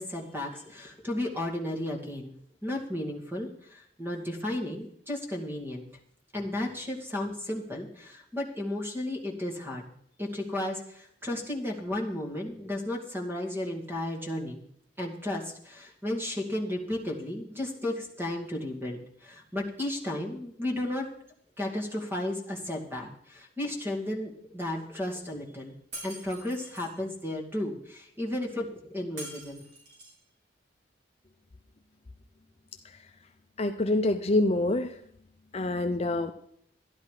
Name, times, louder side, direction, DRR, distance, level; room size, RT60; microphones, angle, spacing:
voice 1, 0.0-2.3 2.6-5.9 6.3-9.9 10.2-14.6 15.0-21.1 21.6-25.8 26.0-29.6, left 1 dB, 10° right, 2 dB, 2.3 m, -34 dB
Shatter, 25.9-26.9 29.2-30.2, right 1 dB, 70° right, 5.5 m, -44 dB
voice 2, 33.6-34.9 35.5-36.3, left 2 dB, 35° left, 7 dB, 0.6 m, -26 dB
13.0 x 11.5 x 4.9 m, 0.68 s
head